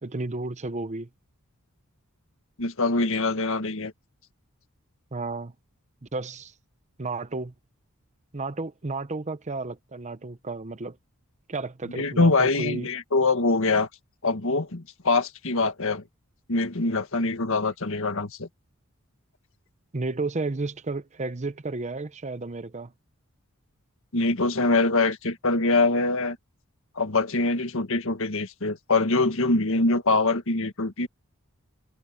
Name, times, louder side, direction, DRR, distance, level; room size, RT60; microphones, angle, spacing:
voice 1, 0.0-1.1 5.1-5.5 6.0-6.5 7.0-7.5 8.3-11.0 11.5-12.9 19.9-22.9, right 3 dB, 30° right, 0.8 m, -32 dB
voice 2, 2.6-3.9 11.9-13.9 14.2-16.0 16.5-18.5 24.1-26.4 26.9-31.1, left 3 dB, 65° left, 1.8 m, -24 dB
head